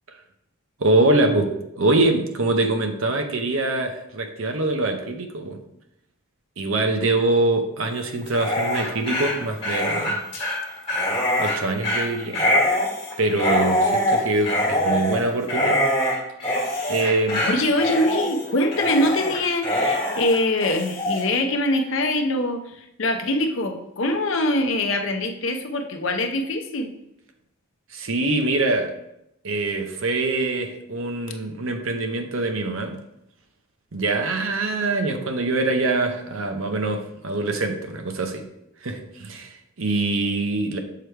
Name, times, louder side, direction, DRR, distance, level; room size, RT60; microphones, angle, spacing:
voice 1, 0.8-5.6 6.6-10.2 11.4-12.4 13.2-15.8 16.9-17.4 27.9-28.9 29.4-33.0 33.9-38.4 38.8-40.8, right 2 dB, 65° right, 5 dB, 0.7 m, -24 dB
Dog, 8.2-21.2, left 1 dB, 25° left, 1.8 m, -24 dB
voice 2, 17.4-26.9, left 1 dB, 60° left, 6 dB, 0.7 m, -23 dB
6.7 x 3.3 x 4.5 m, 0.82 s
head